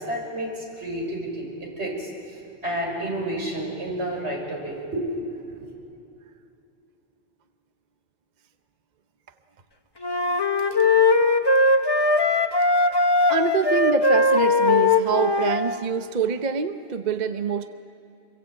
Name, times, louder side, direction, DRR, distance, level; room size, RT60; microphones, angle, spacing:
voice 1, 0.0-2.1 2.6-5.8, right 1 dB, 90° right, -1 dB, 6.1 m, -30 dB
sound 1, 10.0-15.8, left 2 dB, 25° left, 1.0 m, -20 dB
voice 2, 13.3-17.7, right 6 dB, 45° right, 8 dB, 0.9 m, -25 dB
25.5 x 23.0 x 8.6 m, 2.8 s
omnidirectional pair, 1.1 m